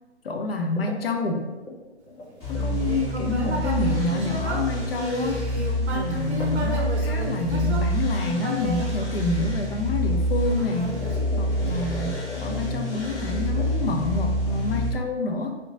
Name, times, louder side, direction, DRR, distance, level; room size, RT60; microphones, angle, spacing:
voice 1, 0.2-1.5 2.5-5.5 5.9-15.6, left 3 dB, 55° left, 4 dB, 0.4 m, -28 dB
sound 1, 0.8-3.1 3.9-4.0 5.2-5.4 5.7-5.8 6.4-6.6 6.9-7.7 8.9-9.0 9.9-10.0 10.4-15.0, left 2 dB, 90° left, 0.8 m, -39 dB
sound 2, 2.4-14.9, equal, 15° left, 1.1 m, -27 dB
Human voice, 2.5-9.9 10.4-11.9, right 2 dB, 65° right, 0.6 m, -33 dB
2.8 x 2.1 x 2.4 m, 1.1 s
figure-of-eight pair, 145°, 35 cm